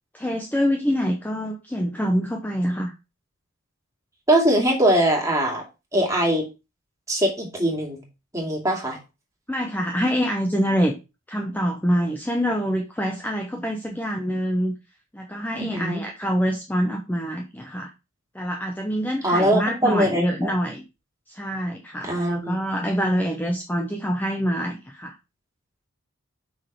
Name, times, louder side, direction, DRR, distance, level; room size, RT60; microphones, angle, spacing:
voice 1, 0.1-2.9 9.5-10.9 11.3-14.7 15.1-17.9 18.3-20.8 21.3-25.1, equal, 10° left, 2 dB, 0.7 m, -25 dB
voice 2, 4.3-5.6 5.9-6.4 7.1-8.0 8.3-9.0 15.6-16.0 19.2-20.5 22.0-22.6, right 1 dB, 15° right, 0 dB, 2.5 m, -22 dB
5.9 x 5.3 x 4.7 m, 0.27 s
head